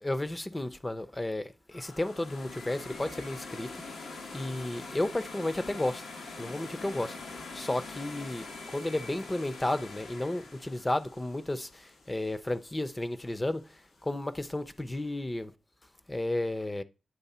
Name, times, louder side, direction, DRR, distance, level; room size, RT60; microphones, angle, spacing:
voice 1, 0.0-3.7 4.3-6.0 6.4-7.1 7.5-15.5 16.1-16.8, left 1 dB, 20° left, 0.6 m, -33 dB
sound 1, 1.7-12.7, left 3 dB, 85° left, 1.4 m, -44 dB
9.3 x 3.2 x 4.2 m
cardioid pair, 55°, 0 cm